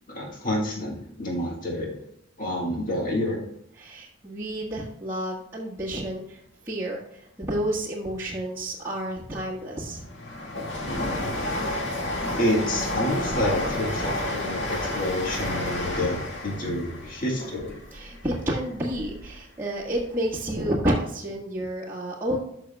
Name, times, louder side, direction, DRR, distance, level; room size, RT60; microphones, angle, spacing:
voice 1, 0.1-2.0 2.4-3.4 12.4-17.8, left 1 dB, 40° left, -2 dB, 1.8 m, -28 dB
voice 2, 3.7-6.4 6.6-10.0 17.9-22.4, right 1 dB, 10° right, -7 dB, 1.5 m, -30 dB
Train, 9.4-19.3 19.7-20.7 20.9-21.0, left 1 dB, 60° left, 2.1 m, -31 dB
13.0 x 6.0 x 2.3 m, 0.76 s
head